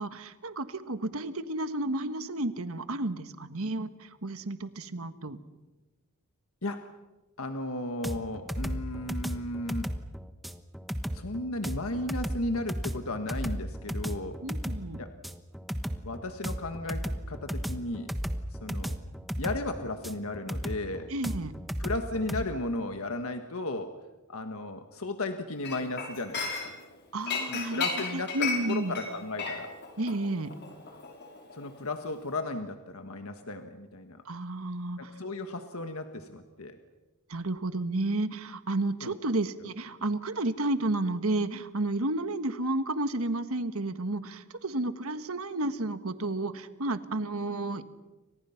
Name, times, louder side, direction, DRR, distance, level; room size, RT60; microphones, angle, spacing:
voice 1, 0.0-5.4 14.4-15.0 21.1-21.5 27.1-27.8 28.1-29.0 30.0-30.6 34.2-35.1 37.3-47.8, right 2 dB, 70° right, 11 dB, 1.5 m, -31 dB
voice 2, 7.4-9.9 11.1-14.4 15.0-15.1 16.0-18.1 18.5-19.0 19.4-21.1 21.8-24.0 24.3-26.7 27.5-29.7 31.5-34.2 35.0-36.8 39.0-39.1, left 2 dB, 70° left, 6 dB, 1.6 m, -35 dB
sound 1, 8.0-22.5, equal, ahead, 1.2 m, -34 dB
Chink clink, 25.6-26.9 27.3-31.9 32.1-32.4, left 5 dB, 50° left, 5.4 m, -34 dB
30.0 x 25.0 x 5.9 m, 1.1 s
head